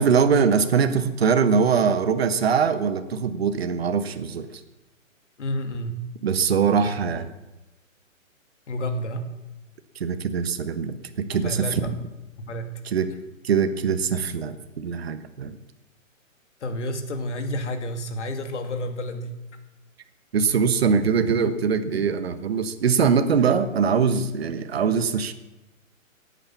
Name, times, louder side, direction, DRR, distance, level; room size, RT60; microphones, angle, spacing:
voice 1, 0.0-4.6 6.2-7.3 9.9-11.9 12.8-13.1 13.4-15.6 20.3-25.3, right 6 dB, 50° right, 10 dB, 1.2 m, -22 dB
voice 2, 5.4-6.0 8.7-9.3 11.3-11.9 12.4-12.7 16.6-19.4, equal, 60° left, 6 dB, 2.5 m, -30 dB
17.0 x 8.9 x 7.2 m, 1.0 s
hypercardioid pair, 180°, 40 cm